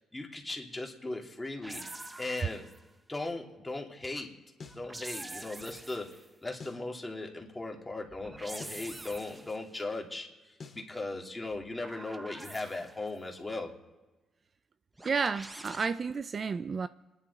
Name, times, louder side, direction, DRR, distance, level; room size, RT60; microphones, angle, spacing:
voice 1, 0.0-1.8 2.2-2.7 3.1-4.3 4.7-13.7, left 2 dB, 15° left, 2.9 m, -38 dB
sound 1, 1.6-2.9 4.7-6.3 8.1-9.7 11.5-13.2 15.0-15.9, right 2 dB, 15° right, 0.9 m, -46 dB
sound 2, 4.6-4.9 6.6-6.9 8.6-8.9 10.6-10.9, left 4 dB, 40° left, 2.1 m, -47 dB
voice 2, 15.0-16.9, right 5 dB, 40° right, 0.4 m, -31 dB
29.5 x 11.0 x 4.2 m
cardioid pair, 90°, 0 cm